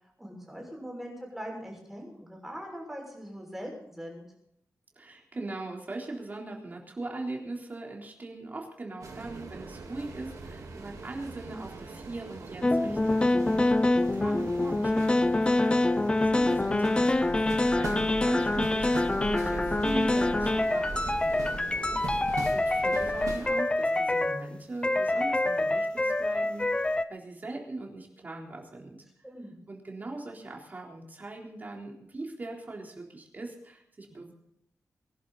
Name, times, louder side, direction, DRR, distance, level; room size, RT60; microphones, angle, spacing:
voice 1, 0.2-4.2 29.2-29.5, equal, 5° right, -1 dB, 6.3 m, -41 dB
voice 2, 5.0-13.2 13.5-21.8 22.5-29.0 29.7-34.3, right 2 dB, 30° right, -1 dB, 3.8 m, -40 dB
sound 1, 9.0-23.5, right 3 dB, 85° right, 3.5 m, -40 dB
sound 2, 12.6-24.5 24.8-27.0, left 2 dB, 15° left, 0.6 m, -26 dB
23.0 x 11.0 x 4.2 m, 0.75 s
wide cardioid pair, 160°, 6 cm